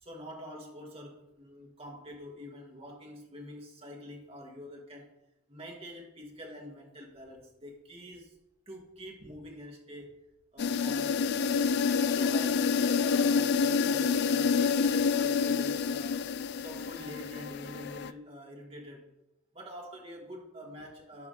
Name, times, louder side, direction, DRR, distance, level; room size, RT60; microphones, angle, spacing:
voice 1, 0.0-5.1 5.5-8.3 8.7-10.2 10.5-11.4 12.1-16.3 16.5-19.1 19.5-21.3, equal, 30° right, -1 dB, 2.0 m, -46 dB
sound 1, 10.6-18.1, left 5 dB, 55° left, 0.3 m, -28 dB
11.5 x 5.0 x 4.2 m, 0.84 s
head